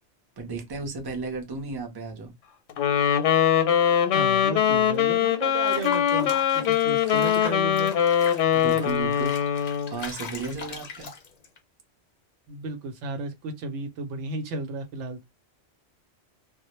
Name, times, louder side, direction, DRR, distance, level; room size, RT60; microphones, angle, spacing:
voice 1, 0.4-2.3 8.5-9.3 9.9-11.1, right 4 dB, 30° right, 0.5 m, -34 dB
Wind instrument woodwind instrument, 2.8-10.0, left 9 dB, 90° left, 0.9 m, -22 dB
voice 2, 4.1-6.3 6.7-7.9 12.5-15.2, right 2 dB, 85° right, 0.9 m, -33 dB
Water / Bathtub (filling or washing), 5.7-11.6, left 5 dB, 55° left, 0.4 m, -40 dB
2.1 x 2.0 x 2.9 m
omnidirectional pair, 1.2 m